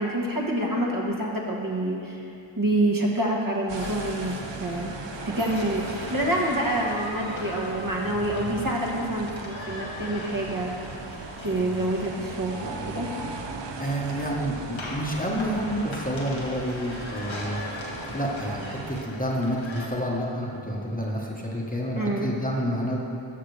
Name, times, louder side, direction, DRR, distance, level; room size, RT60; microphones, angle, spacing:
voice 1, 0.0-2.2 2.6-4.3 4.6-4.9 5.2-10.7 11.4-13.1 21.9-22.3, right 1 dB, 45° right, -3 dB, 1.4 m, -27 dB
sound 1, 3.7-19.9, left 1 dB, 70° left, 1.4 m, -39 dB
sound 2, 3.7-19.0, right 4 dB, 60° right, 0.7 m, -39 dB
voice 2, 13.8-17.6 18.1-23.0, equal, 15° left, -3 dB, 1.2 m, -29 dB
13.0 x 5.9 x 3.3 m, 2.6 s
wide cardioid pair, 40°, 49 cm